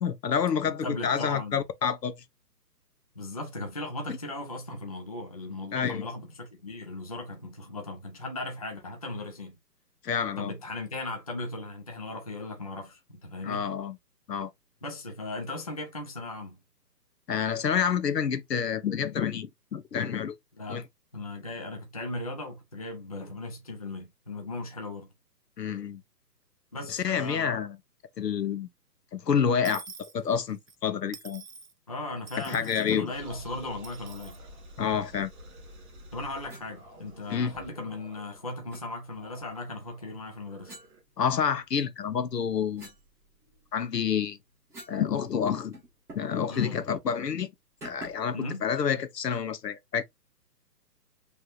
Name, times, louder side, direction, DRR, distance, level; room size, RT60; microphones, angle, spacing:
voice 1, 0.0-2.1 5.7-6.1 10.0-10.5 13.4-14.0 14.3-14.5 17.3-20.3 20.7-20.8 25.6-26.0 26.9-27.8 28.2-28.7 29.1-29.8 30.1-31.4 32.5-33.1 34.8-35.3 37.3-37.5 41.2-42.9 43.7-44.4 44.9-45.8 46.1-47.5 47.8-50.0, left 7 dB, 70° left, 0.9 m, -28 dB
voice 2, 0.7-1.6 3.2-9.6 10.4-13.7 14.8-16.6 20.6-20.8 21.1-25.1 26.7-27.6 31.9-34.4 36.1-40.7 46.5-46.8 48.3-48.6, left 2 dB, 25° left, 0.5 m, -37 dB
Dishes pots and pans / Coin (dropping), 29.6-30.8 31.1-31.7 32.3-33.0 33.8-34.4, right 5 dB, 60° right, 1.1 m, -46 dB
sound 1, 33.1-41.0, equal, 30° right, 2.5 m, -49 dB
sound 2, 36.5-36.7 38.7-38.9 40.6-41.7 42.2-45.1 45.3-45.4 45.7-46.4 46.7-46.9 47.8-48.4, right 1 dB, 5° right, 1.8 m, -49 dB
4.7 x 3.3 x 2.5 m
figure-of-eight pair, 145°, 50 cm